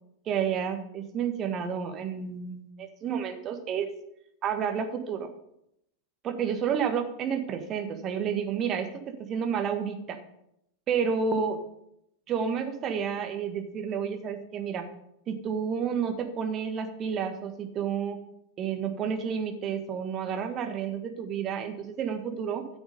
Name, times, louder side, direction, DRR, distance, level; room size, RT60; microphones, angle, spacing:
voice 1, 0.2-3.9 4.4-5.3 6.2-10.2 10.9-11.6 12.3-14.8 15.3-18.2 18.6-22.7, right 7 dB, 30° right, 5 dB, 1.6 m, -30 dB
13.0 x 7.1 x 5.3 m, 0.78 s
figure-of-eight pair, 90°, 0 cm